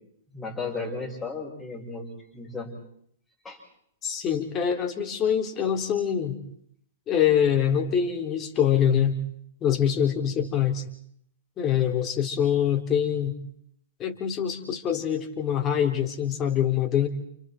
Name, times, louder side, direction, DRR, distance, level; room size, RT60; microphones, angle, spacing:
voice 1, 0.3-2.1 2.3-2.7 3.4-3.6, left 4 dB, 10° left, -4 dB, 6.7 m, -34 dB
voice 2, 4.0-6.4 7.1-9.2 9.6-10.8 11.6-13.4 14.0-17.1, left 9 dB, 25° left, 4 dB, 3.5 m, -24 dB
29.5 x 29.5 x 4.6 m, 0.67 s
hypercardioid pair, 115°, 0 cm